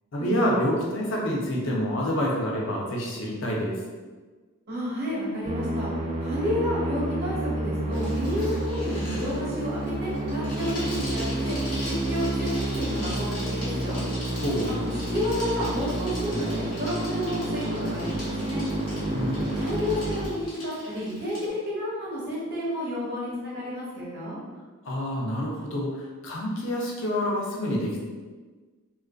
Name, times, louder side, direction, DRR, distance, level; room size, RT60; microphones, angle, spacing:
voice 1, 0.1-3.8 14.4-14.7 19.1-19.5 24.8-28.0, equal, 60° left, -2 dB, 0.5 m, -27 dB
voice 2, 4.7-5.9 6.2-11.6 11.8-14.0 14.7-18.6 19.5-24.4, equal, 45° right, -7 dB, 0.9 m, -31 dB
Musical instrument, 5.4-20.3, right 1 dB, 30° right, 0.3 m, -30 dB
Bicycle, 7.9-21.5, left 1 dB, 80° left, 0.9 m, -41 dB
2.3 x 2.3 x 2.3 m, 1.3 s
head